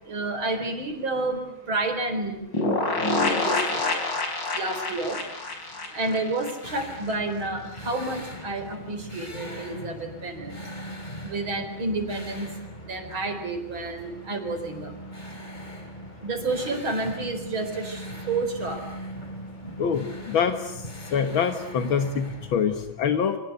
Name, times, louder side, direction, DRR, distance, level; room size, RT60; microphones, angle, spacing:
voice 1, 0.0-2.5 3.2-4.0 4.5-5.2 5.6-10.6 11.2-15.0 15.3-15.4 16.2-19.2, right 2 dB, 80° right, 6 dB, 5.0 m, -30 dB
sound 1, 2.5-7.2 7.4-7.5 7.8-7.9, left 2 dB, 60° left, 5.2 m, -27 dB
sound 2, 6.6-22.6, equal, 20° left, 3.6 m, -40 dB
voice 2, 19.8-20.8 21.1-23.4, left 7 dB, 75° left, 8 dB, 2.1 m, -25 dB
29.0 x 24.5 x 8.2 m, 0.83 s
omnidirectional pair, 2.2 m